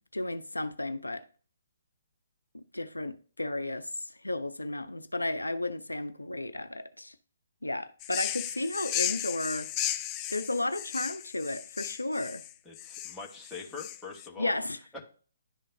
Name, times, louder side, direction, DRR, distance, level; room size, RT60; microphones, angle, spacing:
voice 1, 0.1-1.2 2.5-7.1 7.6-9.7 10.3-12.4 14.4-15.0, left 2 dB, 85° left, 0.5 m, -33 dB
sound 1, 8.0-14.3, left 12 dB, 25° left, 0.3 m, -35 dB
voice 2, 12.6-14.5 14.9-15.0, left 4 dB, 5° left, 1.3 m, -43 dB
11.0 x 3.7 x 2.7 m
figure-of-eight pair, 130°, 0 cm